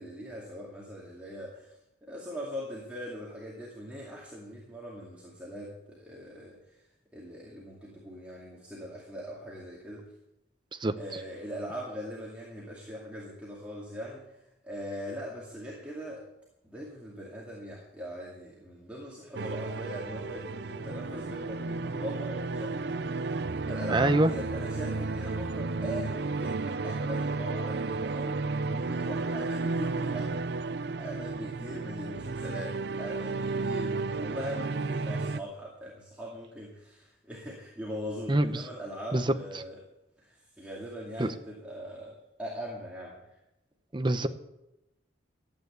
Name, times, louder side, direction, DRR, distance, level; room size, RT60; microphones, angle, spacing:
voice 1, 0.0-1.8 2.0-6.8 7.1-10.0 11.0-14.4 14.6-16.3 16.6-30.4 31.0-39.8 40.2-43.2, equal, 5° right, -5 dB, 2.3 m, -41 dB
sound 1, 19.4-35.4, right 3 dB, 60° right, 0.5 m, -33 dB
voice 2, 23.9-24.3 38.3-38.6 39.1-39.2 41.2-41.3 43.9-44.3, right 1 dB, 25° right, 9 dB, 0.8 m, -24 dB
13.5 x 8.9 x 8.1 m, 0.90 s
head